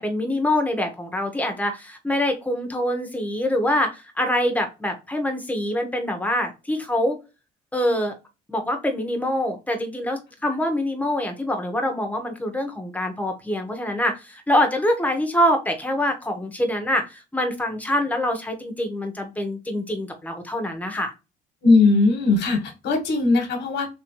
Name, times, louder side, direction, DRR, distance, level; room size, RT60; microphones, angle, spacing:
voice 1, 0.0-7.2 7.7-8.1 8.5-21.1, left 1 dB, 10° left, 4 dB, 1.3 m, -25 dB
voice 2, 21.6-23.9, left 3 dB, 75° left, 5 dB, 1.5 m, -19 dB
3.4 x 3.2 x 3.1 m, 0.27 s
cardioid pair, 80°, 18 cm